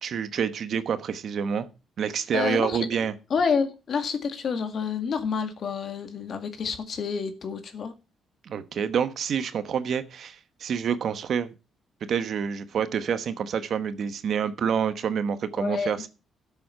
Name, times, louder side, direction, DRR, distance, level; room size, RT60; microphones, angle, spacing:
voice 1, 0.0-1.7 2.0-3.1 8.4-11.5 12.1-16.1, right 7 dB, 60° right, 11 dB, 1.1 m, -27 dB
voice 2, 2.3-2.9 3.3-7.9 15.6-16.0, left 6 dB, 55° left, 8 dB, 2.0 m, -28 dB
13.0 x 7.1 x 5.7 m, 0.31 s
cardioid pair, 90°, 0 cm